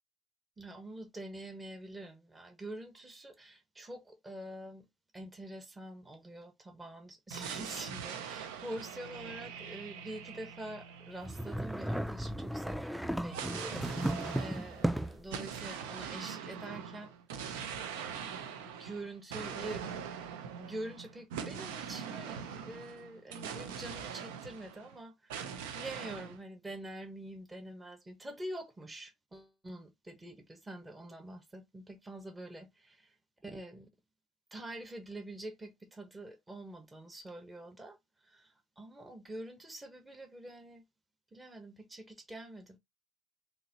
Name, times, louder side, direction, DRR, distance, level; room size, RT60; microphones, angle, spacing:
voice 1, 0.6-4.9 5.1-17.9 18.6-20.1 20.6-33.1 33.4-33.9 34.5-38.0 38.2-40.8 41.3-42.8, right 1 dB, 20° right, 1.2 m, -46 dB
sound 1, 7.3-12.0 13.3-24.9 25.3-26.4, right 7 dB, 90° right, 0.6 m, -42 dB
sound 2, 11.2-15.3, right 1 dB, 5° right, 0.4 m, -35 dB
3.9 x 2.9 x 2.8 m
supercardioid pair, 75°, 0 cm